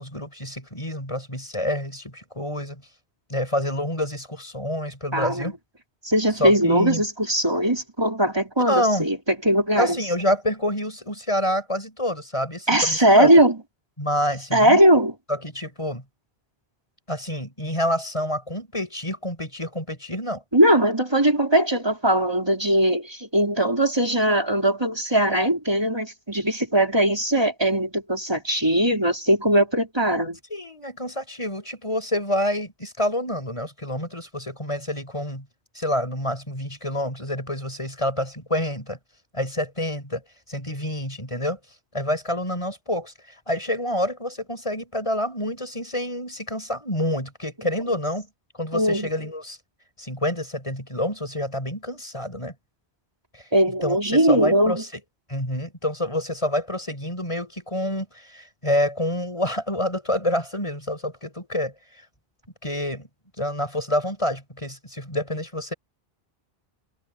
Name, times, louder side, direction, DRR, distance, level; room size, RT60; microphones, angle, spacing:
voice 1, 0.0-2.8 3.3-5.6 6.4-7.0 8.7-9.1 9.8-13.3 14.0-14.8 15.3-16.0 17.1-20.4 30.5-35.4 35.7-39.0 39.3-40.2 40.5-41.6 41.9-43.1 43.5-48.3 48.5-49.6 50.0-52.5 53.3-53.4 53.8-54.9 55.3-61.7 62.6-63.1 63.4-65.7, left 1 dB, 30° left, 8.0 m, -27 dB
voice 2, 5.1-5.5 6.0-9.2 9.4-10.0 12.7-13.6 14.5-15.1 20.5-30.4 48.7-49.1 53.5-54.8, right 1 dB, 25° right, 4.3 m, -20 dB
omnidirectional pair, 1.1 m